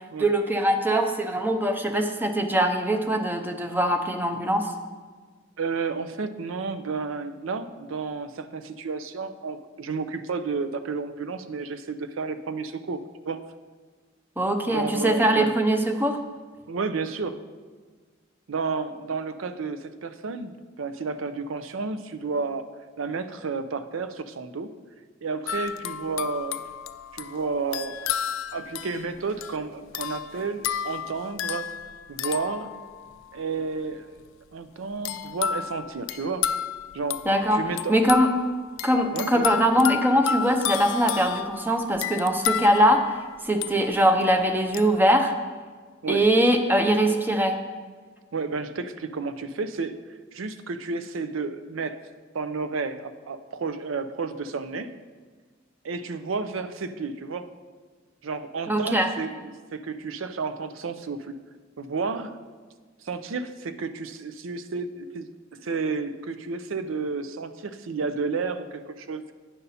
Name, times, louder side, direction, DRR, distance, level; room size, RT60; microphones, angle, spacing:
voice 1, 0.2-4.7 14.4-16.2 37.3-37.6 37.9-38.3 38.8-43.1 43.4-45.3 46.1-47.6 58.7-59.1, equal, 10° right, 5 dB, 0.6 m, -22 dB
voice 2, 5.6-13.0 13.3-13.4 14.7-15.5 16.7-17.4 18.5-22.7 23.0-24.7 25.2-26.6 27.1-28.2 28.5-31.7 32.1-32.7 33.3-34.2 34.5-36.4 36.9-37.2 37.5-38.0 39.1-39.6 46.0-46.2 48.3-49.9 50.3-52.0 52.3-54.9 55.8-57.5 58.2-59.4 59.7-61.4 61.8-62.4 63.0-65.3 65.5-69.3, right 4 dB, 85° right, 10 dB, 0.5 m, -31 dB
sound 1, 25.5-33.3 35.0-44.2 44.7-45.0, left 8 dB, 80° left, 0.4 m, -32 dB
9.2 x 5.5 x 4.1 m, 1.5 s
head